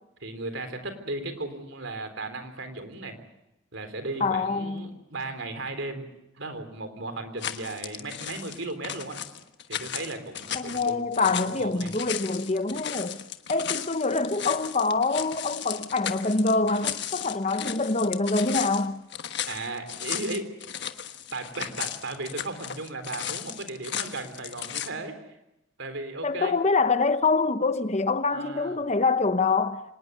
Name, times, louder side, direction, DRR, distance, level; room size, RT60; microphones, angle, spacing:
voice 1, 0.2-3.2 3.7-6.1 6.4-9.2 9.7-11.9 19.5-20.5 21.3-25.3 25.8-26.5 28.3-28.8, right 2 dB, 65° right, 3.7 m, -36 dB
voice 2, 4.2-5.0 10.5-13.2 13.5-19.0 26.2-29.8, left 3 dB, 30° left, 1.0 m, -25 dB
sound 1, 7.4-24.9, left 10 dB, 55° left, 1.4 m, -35 dB
26.0 x 19.5 x 8.1 m
head